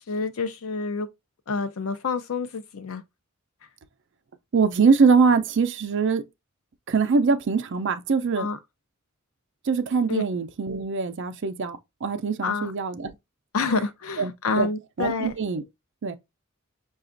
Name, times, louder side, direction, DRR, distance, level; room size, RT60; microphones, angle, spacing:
voice 1, 0.1-1.1 1.5-3.0 8.4-8.6 10.1-10.2 12.4-12.7 13.5-15.3, left 4 dB, 80° left, 0.6 m, -28 dB
voice 2, 4.5-6.2 6.9-8.5 9.7-13.1 14.2-14.3 14.6-14.7 15.0-15.6 16.0-16.1, right 5 dB, 60° right, 0.5 m, -23 dB
5.7 x 2.3 x 2.5 m
head